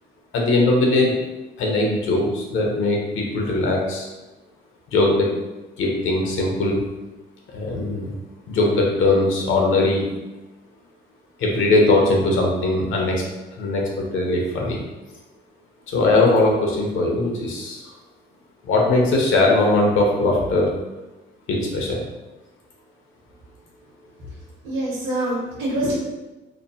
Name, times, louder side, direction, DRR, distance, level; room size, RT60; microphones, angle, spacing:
voice 1, 0.3-1.2 1.6-4.1 4.9-5.3 5.8-6.8 7.5-8.1 8.5-10.1 11.4-13.2 13.6-14.8 15.9-17.8 18.6-20.7 21.5-22.0, left 2 dB, 85° left, -1 dB, 0.7 m, -20 dB
voice 2, 24.6-26.0, right 1 dB, 70° right, -9 dB, 1.0 m, -25 dB
3.0 x 2.0 x 2.7 m, 1.1 s
cardioid pair, 90°, 20 cm